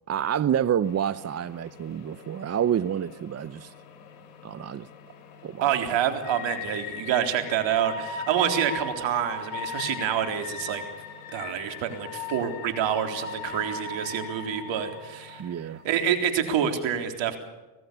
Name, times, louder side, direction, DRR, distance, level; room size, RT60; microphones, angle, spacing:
voice 1, 0.1-3.7 4.4-4.9 5.4-5.7 15.4-15.8, right 9 dB, 35° right, 0.7 m, -28 dB
sound 1, 0.8-16.8, left 4 dB, 80° left, 6.5 m, -39 dB
voice 2, 5.6-10.8 11.3-17.4, right 9 dB, 70° right, 4.0 m, -27 dB
26.0 x 17.5 x 6.9 m
supercardioid pair, 80°, 46 cm